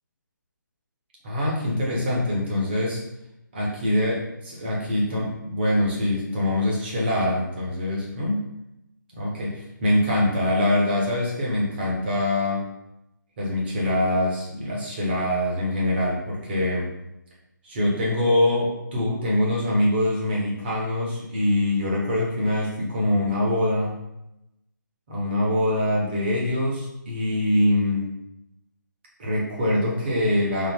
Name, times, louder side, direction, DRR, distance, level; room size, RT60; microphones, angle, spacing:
voice 1, 1.2-3.0 3.5-8.5 9.2-12.6 13.4-16.9 17.6-23.9 25.1-28.1 29.2-30.7, left 1 dB, 30° right, -4 dB, 1.1 m, -24 dB
3.7 x 2.1 x 3.6 m, 0.86 s
hypercardioid pair, 160°, 11 cm